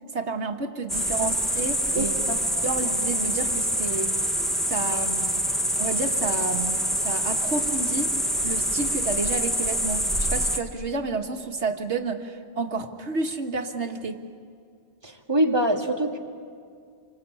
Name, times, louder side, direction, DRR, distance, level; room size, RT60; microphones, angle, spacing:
voice 1, 0.1-2.3 2.6-4.4 4.7-5.4 5.8-8.2 8.4-14.2, right 3 dB, 80° right, 4 dB, 1.9 m, -30 dB
sound 1, 0.9-10.6, equal, ahead, 1.9 m, -26 dB
voice 2, 2.0-2.4 15.0-16.2, right 1 dB, 20° right, 1 dB, 2.3 m, -25 dB
28.0 x 25.0 x 8.4 m, 2.3 s
omnidirectional pair, 1.2 m